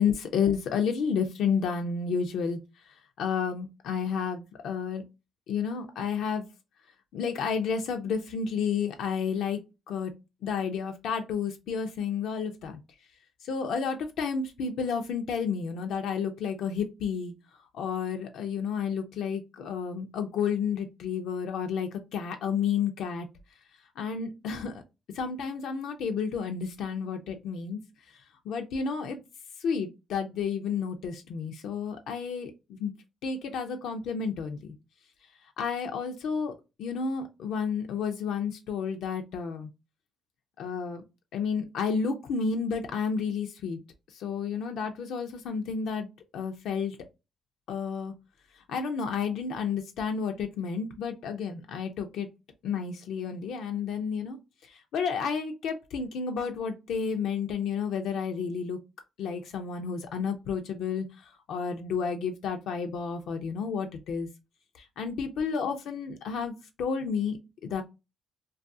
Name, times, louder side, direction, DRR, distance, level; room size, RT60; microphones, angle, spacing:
voice 1, 0.0-2.6 3.2-5.0 5.5-6.5 7.1-10.1 10.4-12.8 13.4-17.3 17.7-23.3 24.0-24.8 25.1-27.8 28.5-29.2 29.6-32.5 32.8-32.9 33.2-34.7 35.6-36.5 36.8-39.7 40.6-41.0 41.3-43.8 44.1-46.1 46.3-47.0 47.7-48.1 48.7-52.3 52.6-54.4 54.7-58.8 59.2-61.1 61.5-64.3 64.8-67.8, left 6 dB, 80° left, 0.4 m, -31 dB
2.3 x 2.3 x 2.5 m
cardioid pair, 90°, 0 cm